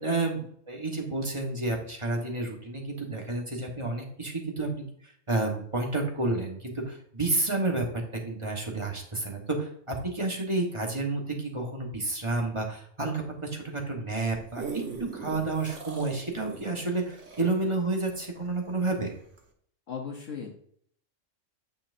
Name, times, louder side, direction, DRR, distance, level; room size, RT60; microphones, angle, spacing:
voice 1, 0.0-7.9 8.1-14.8 15.1-19.1, right 2 dB, 25° right, 1 dB, 1.3 m, -30 dB
sound 1, 14.5-18.9 19.4-19.5, right 5 dB, 70° right, 1.5 m, -40 dB
voice 2, 19.9-20.5, left 6 dB, 70° left, 1 dB, 1.4 m, -36 dB
9.4 x 5.7 x 2.6 m, 0.64 s
omnidirectional pair, 1.3 m